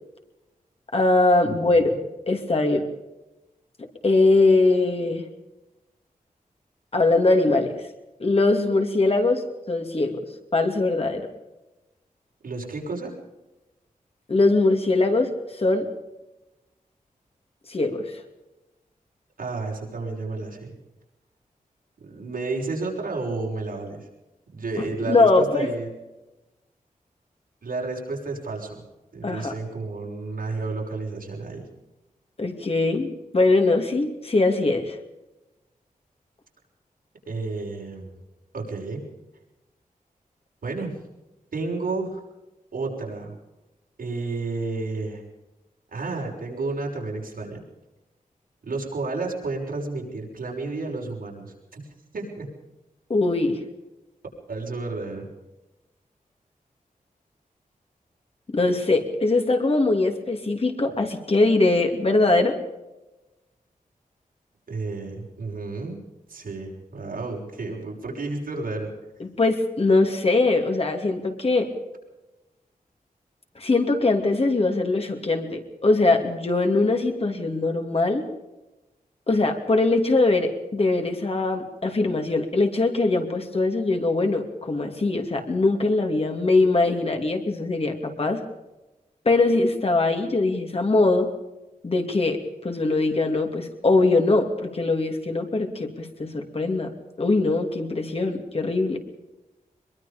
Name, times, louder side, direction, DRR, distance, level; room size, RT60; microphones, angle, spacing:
voice 1, 0.9-1.9 2.3-2.8 4.0-5.3 6.9-7.7 8.2-10.2 10.5-11.3 14.3-15.9 17.7-18.1 24.8-25.7 29.2-29.5 32.4-33.1 33.3-35.0 53.1-53.6 58.5-62.6 69.2-71.7 73.6-78.2 79.3-88.4 89.2-91.3 91.8-96.9 97.2-99.0, left 2 dB, 40° left, 4 dB, 2.8 m, -22 dB
voice 2, 1.4-2.0 12.4-13.1 19.4-20.7 22.0-24.1 24.5-25.9 27.6-28.8 29.1-31.6 37.3-38.1 38.5-39.0 40.6-41.0 41.5-42.2 42.7-43.3 44.0-45.2 45.9-47.6 48.6-51.8 52.1-52.5 54.5-55.3 64.7-66.0 66.3-68.9, right 3 dB, 85° right, -1 dB, 6.2 m, -31 dB
23.5 x 22.5 x 5.2 m, 1.0 s
wide cardioid pair, 115°, 15 cm